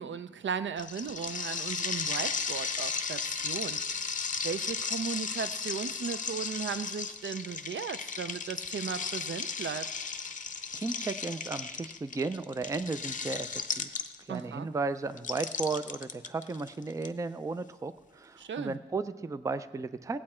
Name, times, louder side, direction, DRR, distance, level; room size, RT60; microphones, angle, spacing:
voice 1, 0.0-9.9 14.3-14.7 18.4-18.8, right 6 dB, 75° right, 13 dB, 0.5 m, -37 dB
sound 1, 0.8-14.4 15.2-17.1, left 5 dB, 40° left, 0.6 m, -35 dB
voice 2, 10.7-13.9 14.2-20.2, right 3 dB, 15° right, 13 dB, 0.3 m, -35 dB
17.5 x 8.6 x 4.3 m, 1.2 s
wide cardioid pair, 175°, 19 cm